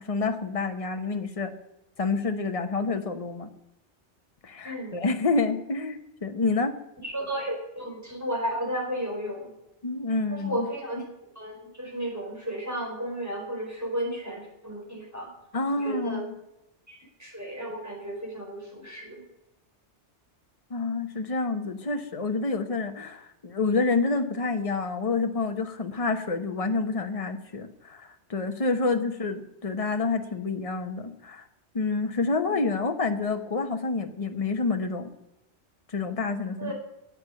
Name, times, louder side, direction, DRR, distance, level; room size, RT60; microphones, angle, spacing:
voice 1, 0.0-1.5 2.0-3.5 4.4-6.8 9.8-10.7 15.5-16.2 20.7-31.4 31.7-35.1 35.9-36.7, left 3 dB, 30° left, 6 dB, 1.2 m, -28 dB
voice 2, 4.6-4.9 7.0-9.5 10.3-11.0 11.4-15.3 15.7-16.2 16.9-19.2 32.5-32.6 36.6-36.7, right 1 dB, 15° right, -1 dB, 4.6 m, -33 dB
10.5 x 8.7 x 9.2 m, 0.90 s
omnidirectional pair, 1.2 m